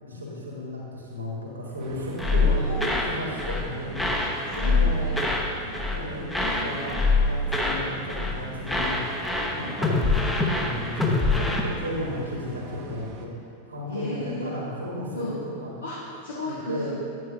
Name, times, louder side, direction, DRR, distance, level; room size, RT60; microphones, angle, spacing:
voice 1, 0.0-4.1 4.6-5.3 5.9-9.0 9.5-13.3 13.7-15.3 15.6-15.7 16.4-16.9, left 1 dB, 80° right, -3 dB, 1.5 m, -34 dB
sound 1, 1.8-13.3, right 2 dB, 40° right, 0.8 m, -42 dB
sound 2, 2.2-3.7 3.9-5.5 5.7-6.0 6.3-7.8 8.1-8.4 8.7-11.6, left 3 dB, 5° left, 0.8 m, -24 dB
voice 2, 2.4-3.4 3.7-3.8 4.1-5.2 5.6-5.9 9.6-9.8 13.9-14.5 15.1-15.3 15.8-16.9, left 1 dB, 75° left, -7 dB, 1.2 m, -35 dB
9.6 x 8.6 x 2.7 m, 2.6 s
figure-of-eight pair, 90°, 0 cm